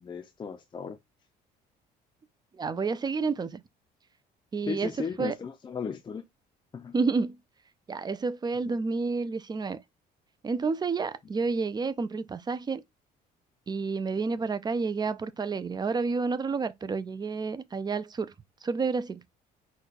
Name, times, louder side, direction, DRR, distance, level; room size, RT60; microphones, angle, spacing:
voice 1, 0.0-1.0 4.7-6.2 6.7-6.9 8.6-8.7, left 6 dB, 25° left, 0.5 m, -36 dB
voice 2, 2.5-3.6 4.5-4.9 5.2-5.3 6.9-7.4 7.9-9.8 10.4-12.8 13.7-18.3 18.6-19.2, right 4 dB, 25° right, 0.4 m, -30 dB
4.1 x 2.3 x 4.1 m
cardioid pair, 110°, 17 cm